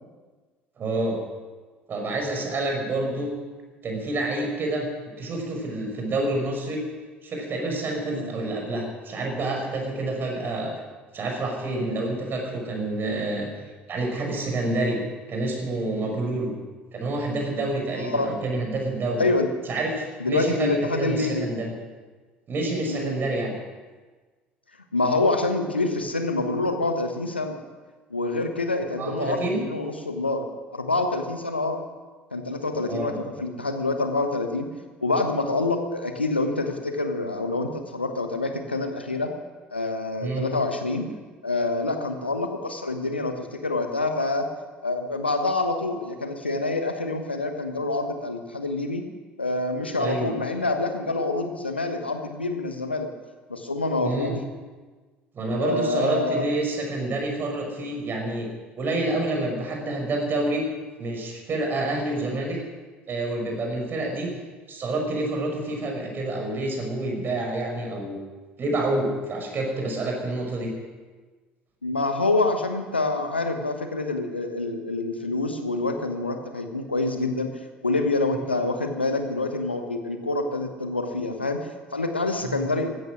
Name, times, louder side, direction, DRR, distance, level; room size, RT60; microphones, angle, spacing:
voice 1, 0.8-1.2 1.9-3.3 3.8-4.9 5.2-6.8 7.2-10.7 11.1-13.5 13.9-15.0 15.3-16.5 16.9-19.2 19.7-21.7 22.5-23.5 29.0-29.6 32.9-33.2 40.2-40.5 50.0-50.3 54.0-54.4 55.3-58.5 58.8-60.6 61.0-62.6 63.1-64.3 64.7-68.2 68.6-70.7 78.3-78.4 82.4-82.7, right 2 dB, 40° right, 1 dB, 5.5 m, -28 dB
voice 2, 17.9-18.3 19.2-19.5 20.2-21.5 22.8-23.2 24.9-27.6 28.1-30.5 30.7-31.8 32.3-34.7 35.0-39.3 39.7-41.1 41.4-44.5 44.8-49.0 49.4-53.1 53.5-54.3 55.5-56.5 71.8-77.5 77.8-82.9, left 2 dB, 90° left, 6 dB, 1.3 m, -26 dB
15.5 x 13.5 x 6.3 m, 1.4 s
figure-of-eight pair, 60°, 6 cm